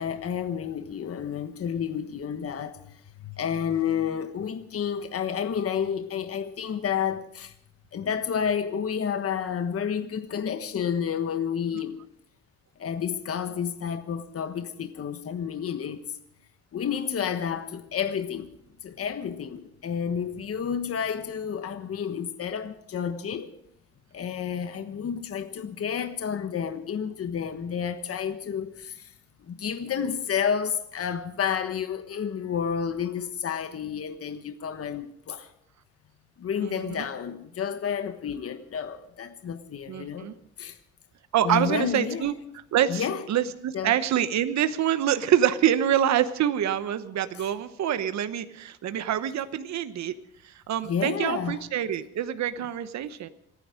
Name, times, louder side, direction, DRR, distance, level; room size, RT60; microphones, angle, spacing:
voice 1, 0.0-2.8 3.2-7.5 7.9-12.0 12.8-16.0 16.7-18.5 18.8-23.5 24.1-29.1 29.4-35.5 36.4-40.3 40.6-40.8 41.4-42.3 42.9-43.3 43.7-44.1 47.3-47.5 50.8-51.7 52.6-52.7, left 7 dB, 50° left, 1.4 m, -30 dB
voice 2, 36.6-37.0 39.9-40.3 41.3-42.3 42.7-50.1 50.4-53.3, right 10 dB, 65° right, 1.0 m, -26 dB
26.5 x 10.0 x 5.1 m
cardioid pair, 90°, 30 cm